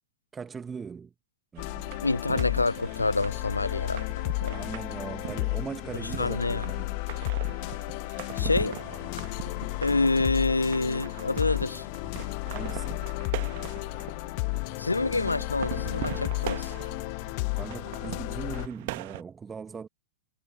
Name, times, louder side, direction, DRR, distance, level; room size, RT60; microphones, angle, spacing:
voice 1, 0.3-1.1 1.5-1.7 4.5-6.9 8.4-8.6 12.5-13.1 17.5-19.9, right 6 dB, 20° right, 1.6 m, -39 dB
sound 1, 1.5-19.2, right 21 dB, 50° right, 1.8 m, -42 dB
sound 2, 1.6-18.7, left 34 dB, 45° left, 1.0 m, -33 dB
voice 2, 2.0-4.6 6.2-6.6 8.4-8.7 9.8-11.9 14.8-16.7, left 3 dB, 80° left, 0.3 m, -27 dB
figure-of-eight pair, 90°, 0 cm